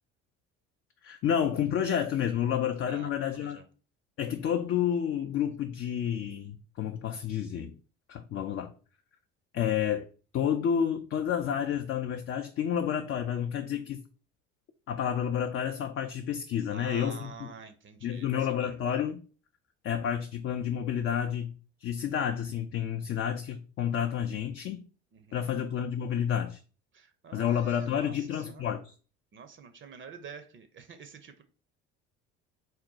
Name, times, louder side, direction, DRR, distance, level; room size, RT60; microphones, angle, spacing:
voice 1, 1.0-3.6 4.2-7.8 8.1-8.7 9.5-10.1 10.3-14.0 14.9-17.5 18.0-19.2 19.8-21.5 21.8-24.8 25.3-26.6 27.3-28.9, left 9 dB, 40° left, 0.4 m, -30 dB
voice 2, 2.9-3.6 16.7-18.7 25.1-25.7 26.9-28.8 29.3-31.4, right 6 dB, 35° right, 0.6 m, -48 dB
3.9 x 2.2 x 3.9 m
hypercardioid pair, 70°, 34 cm